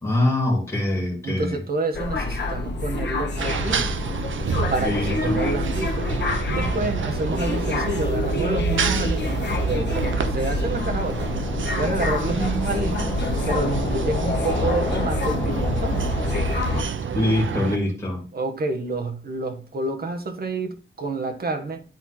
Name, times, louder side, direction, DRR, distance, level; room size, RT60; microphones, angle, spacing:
voice 1, 0.0-1.5 4.8-5.3 17.1-18.2, left 1 dB, 15° left, 2.8 m, -23 dB
voice 2, 1.2-3.9 4.7-6.1 6.5-11.3 11.8-13.1 13.5-16.0 18.3-21.8, right 3 dB, 50° right, 1.3 m, -28 dB
sound 1, 1.9-16.8, left 2 dB, 65° left, 1.2 m, -26 dB
sound 2, 3.4-17.8, right 7 dB, 85° right, 0.7 m, -29 dB
10.0 x 4.4 x 4.3 m
wide cardioid pair, 155°, 20 cm